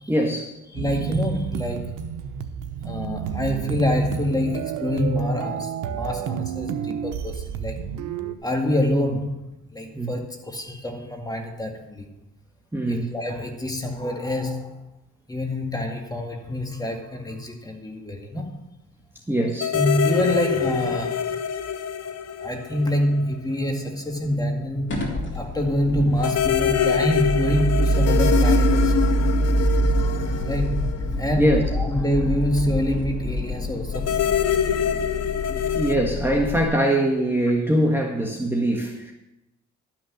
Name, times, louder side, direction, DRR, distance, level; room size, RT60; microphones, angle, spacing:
voice 1, 0.1-0.6 9.9-10.1 12.7-13.1 19.3-19.8 31.4-31.6 35.8-39.1, right 1 dB, 5° right, 0 dB, 1.6 m, -22 dB
voice 2, 0.7-1.9 2.8-7.8 8.4-9.4 9.7-12.1 12.9-14.8 15.3-18.6 19.7-21.4 22.4-28.9 30.0-30.2 30.4-31.5 31.8-34.2, equal, 15° left, 2 dB, 2.0 m, -26 dB
sound 1, 0.8-8.3, right 8 dB, 85° right, 0.9 m, -30 dB
sound 2, 19.6-23.4 23.6-23.7 26.2-31.6 33.9-36.0, left 8 dB, 55° left, 0.8 m, -25 dB
sound 3, 24.9-36.6, right 1 dB, 40° left, 2.8 m, -25 dB
12.0 x 6.2 x 7.3 m, 0.93 s
cardioid pair, 90°, 30 cm